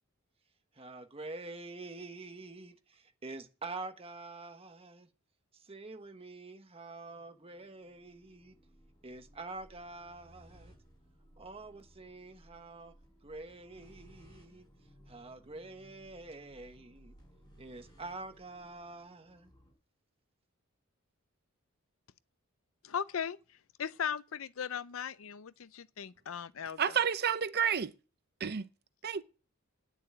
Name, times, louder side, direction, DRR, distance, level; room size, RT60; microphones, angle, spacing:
voice 1, 0.7-5.1 5.5-8.6 9.0-10.7 11.4-12.9 13.2-14.6 15.1-17.2 17.6-19.5, right 3 dB, 30° right, 1.3 m, -46 dB
sound 1, 7.0-19.7, equal, 20° left, 7.7 m, -61 dB
voice 2, 22.8-23.4 23.8-27.0, left 7 dB, 70° left, 0.5 m, -38 dB
voice 3, 26.8-27.9 28.4-28.6 29.0-29.2, right 7 dB, 50° right, 0.6 m, -30 dB
10.0 x 6.9 x 8.9 m
head